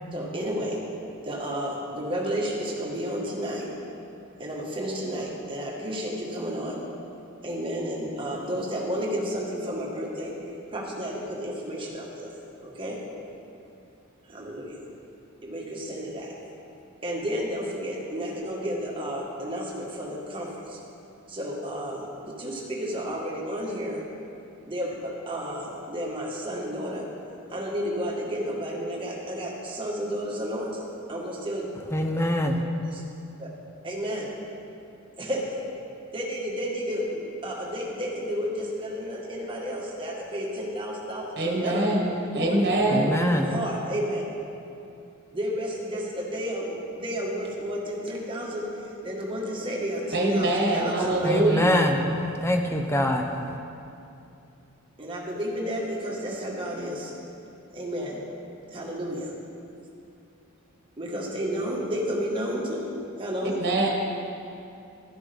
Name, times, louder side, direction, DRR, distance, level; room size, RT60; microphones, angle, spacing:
voice 1, 0.1-0.8 1.2-3.7 4.4-6.8 7.4-12.3 12.6-13.0 14.3-14.8 15.4-16.3 17.0-20.8 21.3-24.0 24.7-27.0 27.5-30.8 31.1-31.6 32.9-33.0 33.4-33.5 33.8-34.3 35.2-35.6 36.1-41.9 42.3-42.6 43.3-44.2 45.3-51.3 55.0-57.1 57.7-58.2 58.7-59.3 61.0-62.8 63.2-63.6, equal, 25° right, -3 dB, 1.5 m, -32 dB
voice 2, 31.9-32.6 42.9-43.5 51.2-52.0 52.4-53.2, left 1 dB, 10° left, 4 dB, 0.6 m, -24 dB
voice 3, 41.4-43.2 50.1-51.8 63.4-63.9, right 1 dB, 45° right, -1 dB, 1.4 m, -24 dB
12.0 x 9.7 x 3.5 m, 2.7 s
head